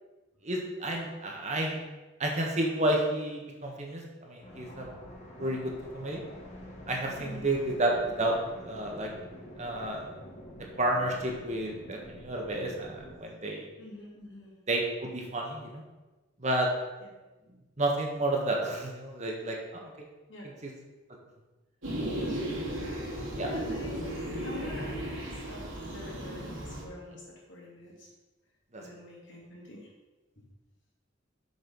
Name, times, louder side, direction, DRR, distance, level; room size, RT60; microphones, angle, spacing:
voice 1, 0.4-1.8 2.2-4.9 5.4-6.2 6.9-9.1 9.6-10.1 10.8-13.6 14.7-15.8 16.4-16.7 17.8-19.9 20.6-20.7 23.4-23.5 28.7-28.8, right 1 dB, 35° right, 0 dB, 1.4 m, -31 dB
sound 1, 4.4-13.2, equal, 35° left, 1.5 m, -47 dB
voice 2, 7.2-7.5 13.8-14.6 17.0-17.1 20.3-20.5 22.1-23.2 23.4-28.1 28.8-29.9 30.4-30.5, left 1 dB, 65° left, -3 dB, 2.6 m, -47 dB
sound 2, 21.8-26.8, right 1 dB, 75° right, 2.6 m, -35 dB
6.7 x 6.7 x 5.3 m, 1.2 s
head